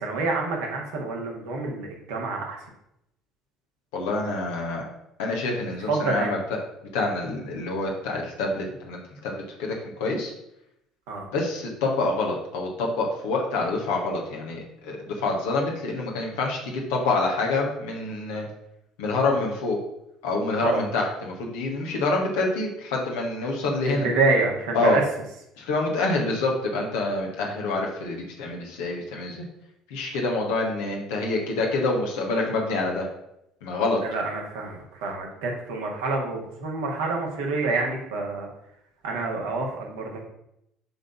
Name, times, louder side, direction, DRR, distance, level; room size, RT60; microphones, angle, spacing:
voice 1, 0.0-2.6 5.9-6.3 11.1-11.3 20.6-20.8 23.8-25.0 34.1-38.5 39.0-40.2, right 3 dB, 65° right, 0 dB, 1.7 m, -27 dB
voice 2, 3.9-4.8 5.2-6.4 6.9-10.3 11.3-18.5 19.0-19.8 20.2-24.1 24.7-25.0 25.6-29.4 29.9-33.1 33.6-34.0, left 2 dB, 65° left, -1 dB, 1.4 m, -27 dB
7.7 x 3.9 x 5.8 m, 0.80 s
figure-of-eight pair, 55°, 0 cm